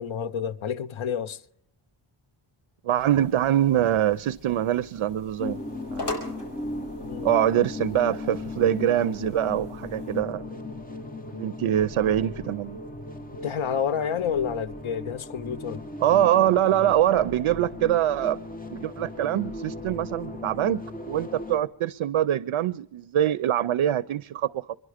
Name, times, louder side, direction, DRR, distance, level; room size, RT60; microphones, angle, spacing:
voice 1, 0.0-1.4 7.0-7.3 13.4-15.8, left 8 dB, 70° left, 0.8 m, -29 dB
voice 2, 2.8-5.6 5.9-6.2 7.2-10.5 11.3-12.8 16.0-18.4 18.7-24.7, right 11 dB, 80° right, 0.6 m, -24 dB
sound 1, 3.0-10.2, left 2 dB, 55° left, 5.7 m, -42 dB
sound 2, 5.4-21.6, left 2 dB, 15° left, 1.2 m, -37 dB
25.5 x 11.0 x 4.9 m
wide cardioid pair, 150°, 49 cm